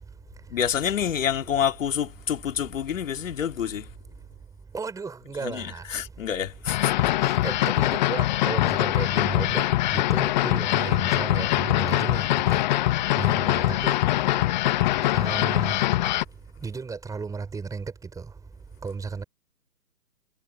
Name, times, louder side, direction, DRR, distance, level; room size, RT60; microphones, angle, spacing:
voice 1, 0.5-3.9 5.4-6.9 13.2-13.5, left 9 dB, 50° left, 2.7 m, -28 dB
voice 2, 4.7-5.8 7.2-9.6 9.9-12.2 12.5-12.6 13.2-14.0 15.1-15.8 16.6-17.9 18.8-19.2, right 4 dB, 5° right, 5.2 m, -33 dB
sound 1, 6.7-16.2, left 15 dB, 25° left, 1.2 m, -23 dB
figure-of-eight pair, 130°, 49 cm